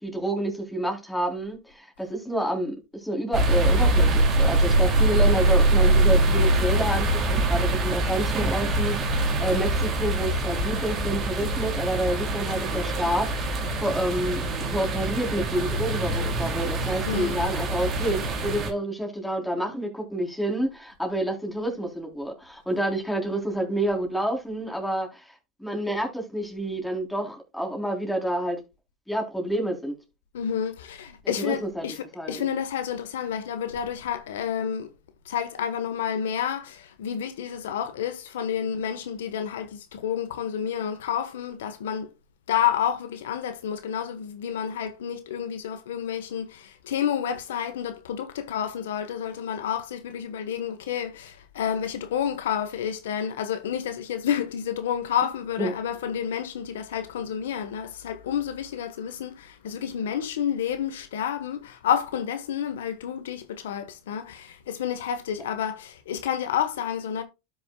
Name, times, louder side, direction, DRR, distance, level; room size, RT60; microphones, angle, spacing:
voice 1, 0.0-25.3 25.6-28.6 29.1-29.9 31.4-31.8 32.2-32.5 55.6-55.7, right 1 dB, 5° left, 3.5 m, -29 dB
sound 1, 3.3-18.7, right 1 dB, 30° right, 2.4 m, -23 dB
voice 2, 17.1-17.4 30.3-34.9 35.2-42.1 42.5-67.2, left 9 dB, 85° left, 1.1 m, -30 dB
12.5 x 6.1 x 2.2 m
supercardioid pair, 115°, 0 cm